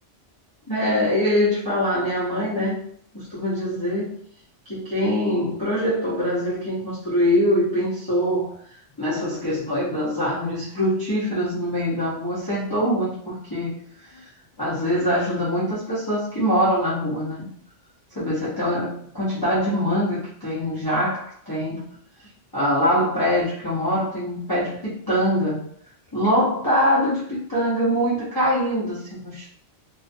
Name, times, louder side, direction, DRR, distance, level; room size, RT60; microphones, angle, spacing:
voice 1, 0.7-2.7 3.1-4.1 4.7-8.5 9.0-14.2 14.6-17.5 18.1-21.8 22.5-25.6 26.1-29.5, equal, 20° left, -11 dB, 0.7 m, -23 dB
2.4 x 2.3 x 2.5 m, 0.63 s
omnidirectional pair, 1.3 m